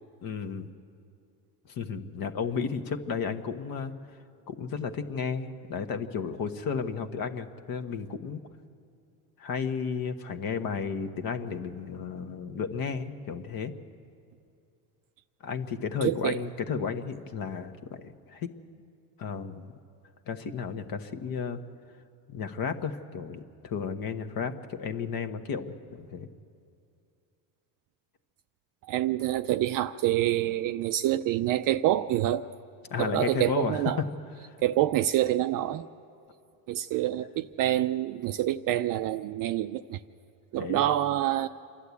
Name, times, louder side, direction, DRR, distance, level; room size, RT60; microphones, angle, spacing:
voice 1, 0.2-0.7 1.7-3.9 4.5-8.4 9.4-13.7 15.4-18.5 19.2-19.7 20.3-21.6 22.3-26.3 32.9-34.1 34.4-34.5 40.6-40.8, left 6 dB, 45° left, 8 dB, 1.3 m, -33 dB
voice 2, 16.0-16.4 28.9-32.4 33.0-34.0 34.6-35.9 36.7-40.0 40.5-41.5, right 13 dB, 45° right, 10 dB, 0.5 m, -27 dB
27.5 x 11.5 x 8.4 m, 2.5 s
supercardioid pair, 110°, 48 cm